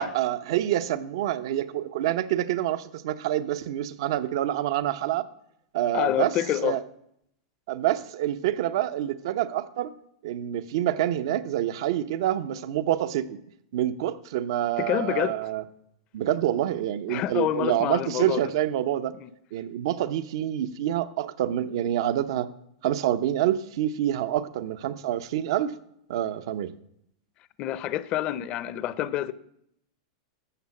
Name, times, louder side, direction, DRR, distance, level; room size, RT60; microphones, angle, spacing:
voice 1, 0.0-5.3 5.7-6.3 6.6-6.8 7.7-9.9 10.2-13.4 13.7-15.6 16.1-19.1 19.5-22.5 22.8-25.7 26.1-26.7, right 12 dB, 65° right, 0.9 m, -27 dB
voice 2, 5.9-6.8 14.8-15.4 17.1-18.4 19.2-19.3 27.6-29.3, left 12 dB, 35° left, 0.7 m, -27 dB
13.0 x 7.5 x 7.1 m
supercardioid pair, 145°, 3 cm